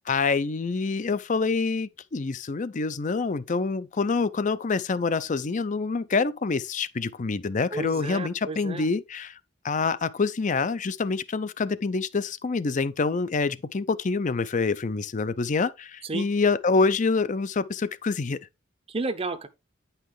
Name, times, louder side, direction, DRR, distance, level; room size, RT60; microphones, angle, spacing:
voice 1, 0.1-9.4 9.6-18.4, left 4 dB, 40° left, 0.5 m, -26 dB
voice 2, 7.7-8.9 16.0-16.3 18.9-19.5, right 3 dB, 30° right, 0.7 m, -32 dB
9.4 x 5.7 x 3.2 m
head